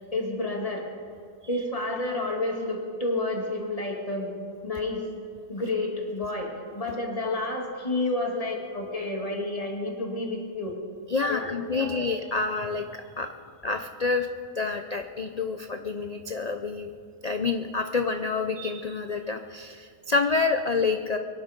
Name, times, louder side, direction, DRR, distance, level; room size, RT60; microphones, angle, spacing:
voice 1, 0.1-0.9 1.5-4.4 4.6-5.0 5.5-10.8 11.3-12.1, left 2 dB, 25° left, 0 dB, 2.3 m, -30 dB
voice 2, 11.1-13.3 13.6-14.3 14.5-16.9 17.2-21.2, left 4 dB, 75° left, 7 dB, 0.3 m, -28 dB
23.0 x 11.0 x 5.2 m, 2.2 s
omnidirectional pair, 1.6 m